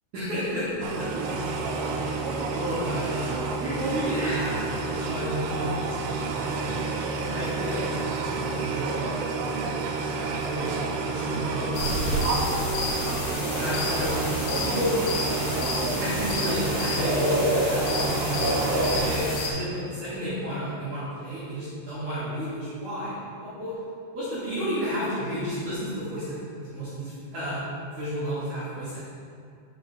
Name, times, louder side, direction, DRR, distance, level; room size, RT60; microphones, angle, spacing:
voice 1, 0.1-1.4 2.0-4.6 4.9-9.5 10.3-10.7 11.1-12.8 13.6-14.1 14.6-15.0 15.7-23.7 24.1-26.4 26.6-27.6 27.9-29.0, equal, 60° right, -12 dB, 2.2 m, -32 dB
sound 1, 0.8-19.2, right 4 dB, 85° right, 3.2 m, -30 dB
sound 2, 11.7-19.5, left 1 dB, 70° left, 3.4 m, -28 dB
6.8 x 5.7 x 4.0 m, 2.3 s
omnidirectional pair, 5.7 m